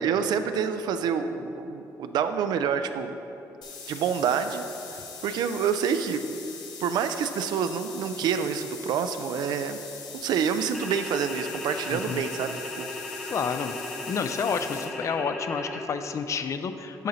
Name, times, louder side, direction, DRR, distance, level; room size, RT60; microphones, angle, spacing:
voice 1, 0.0-3.1 3.9-4.6 4.9-6.2 6.8-9.8 10.1-13.4, right 7 dB, 75° right, 9 dB, 0.4 m, -28 dB
sound 1, 3.6-14.9, left 5 dB, 80° left, 0.8 m, -42 dB
sound 2, 10.7-15.8, left 2 dB, ahead, 0.8 m, -37 dB
voice 2, 11.9-12.2 13.3-13.8 14.1-17.1, left 5 dB, 45° left, 9 dB, 0.4 m, -30 dB
8.4 x 4.2 x 3.9 m, 3.0 s
cardioid pair, 95°, 7 cm